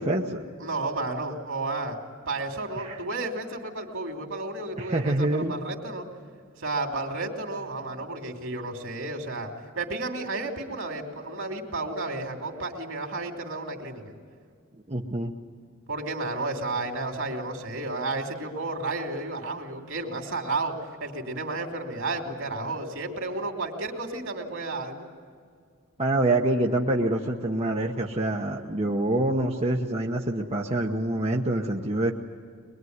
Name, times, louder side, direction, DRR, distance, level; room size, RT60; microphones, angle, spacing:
voice 1, 0.0-0.4 2.8-3.0 4.8-5.5 14.9-15.3 26.0-32.1, right 1 dB, 30° right, -1 dB, 1.2 m, -26 dB
voice 2, 0.6-2.0 2.3-6.1 6.6-9.5 9.7-14.1 15.9-20.7 21.0-25.0, right 2 dB, 65° right, 3 dB, 3.1 m, -32 dB
24.0 x 22.0 x 9.6 m, 2.1 s
head